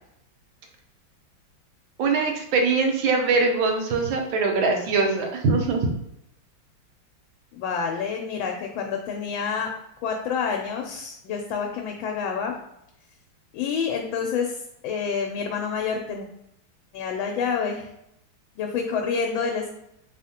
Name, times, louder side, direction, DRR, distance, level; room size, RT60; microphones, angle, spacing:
voice 1, 2.0-5.9, right 4 dB, 80° right, 2 dB, 1.5 m, -22 dB
voice 2, 7.5-9.7 10.0-12.6 13.5-16.3 16.9-17.9 18.6-19.7, left 6 dB, 80° left, 2 dB, 1.3 m, -28 dB
4.0 x 3.5 x 2.8 m, 0.80 s
omnidirectional pair, 2.2 m